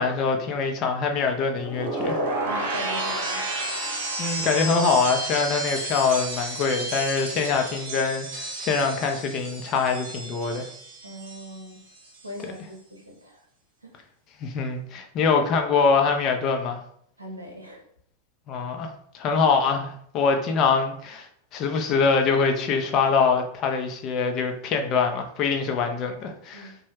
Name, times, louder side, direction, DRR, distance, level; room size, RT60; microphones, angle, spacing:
voice 1, 0.0-2.2 4.2-10.7 14.4-16.8 18.5-26.7, left 5 dB, 35° left, 4 dB, 0.5 m, -24 dB
sound 1, 1.6-11.7 12.0-12.4, right 2 dB, 55° right, 0.9 m, -31 dB
voice 2, 2.4-3.4 11.0-11.8 12.2-13.4 13.8-13.9 17.2-17.8 26.5-26.8, equal, 85° right, 0 dB, 0.7 m, -40 dB
3.0 x 2.2 x 3.1 m, 0.63 s
figure-of-eight pair, 90°, 0 cm